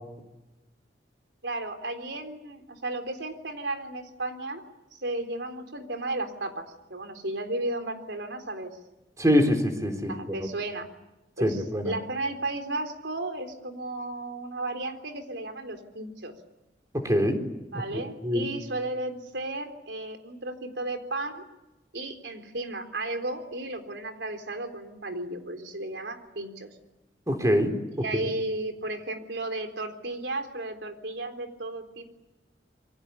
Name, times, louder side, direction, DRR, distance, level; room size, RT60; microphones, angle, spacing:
voice 1, 1.4-4.6 4.9-8.7 10.1-10.9 11.4-16.3 17.7-21.4 21.9-26.7 28.0-32.2, right 2 dB, 85° right, 6 dB, 3.9 m, -34 dB
voice 2, 9.2-10.1 11.4-11.9 16.9-17.4 17.7-18.5 27.3-28.0, equal, 20° right, 5 dB, 3.9 m, -24 dB
27.5 x 24.0 x 8.5 m, 1.0 s
head